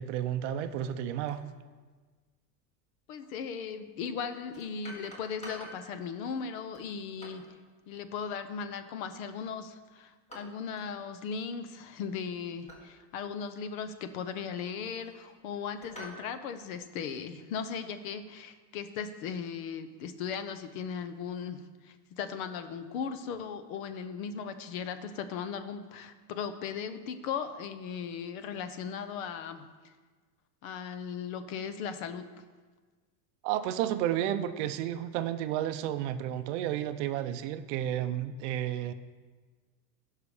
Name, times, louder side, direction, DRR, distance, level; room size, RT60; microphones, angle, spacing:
voice 1, 0.0-1.4 33.4-38.9, right 11 dB, 50° right, 10 dB, 0.6 m, -32 dB
sound 1, 0.8-1.0 1.3-1.5 3.2-3.3 4.5-5.9 6.7-7.5 9.1-9.5 10.3-10.9 11.2-11.5 12.7-12.9 13.5-13.6 14.5-15.3 15.8-16.3, equal, 15° left, 1.6 m, -48 dB
voice 2, 3.1-7.5 7.9-29.9 30.6-32.3, left 6 dB, 55° left, 10 dB, 0.9 m, -37 dB
15.5 x 5.7 x 4.9 m, 1.4 s
supercardioid pair, 165°, 48 cm